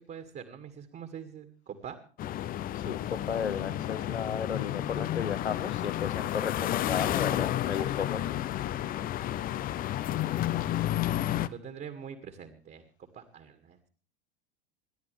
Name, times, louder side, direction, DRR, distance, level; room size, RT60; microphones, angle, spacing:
voice 1, 0.1-2.0 11.4-12.9 13.1-13.8, right 8 dB, 30° right, 2.3 m, -44 dB
sound 1, 2.2-11.5, left 12 dB, 25° left, 0.7 m, -31 dB
voice 2, 2.7-8.4, left 7 dB, 75° left, 1.2 m, -34 dB
28.5 x 12.0 x 3.4 m
figure-of-eight pair, 80°, 33 cm